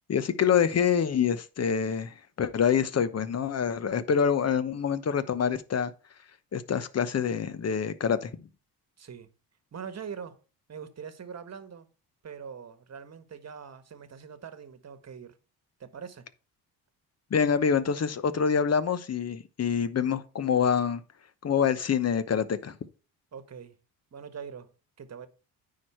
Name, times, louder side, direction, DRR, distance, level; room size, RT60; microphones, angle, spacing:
voice 1, 0.1-5.9 6.5-8.3 17.3-21.0 21.4-22.7, left 7 dB, 35° left, 0.9 m, -26 dB
voice 2, 9.0-9.3 9.7-10.4 10.7-11.9 12.2-15.4 15.8-16.3 23.3-23.7 24.1-24.7 25.0-25.3, right 7 dB, 35° right, 1.4 m, -42 dB
9.4 x 4.7 x 4.4 m
supercardioid pair, 70°, 42 cm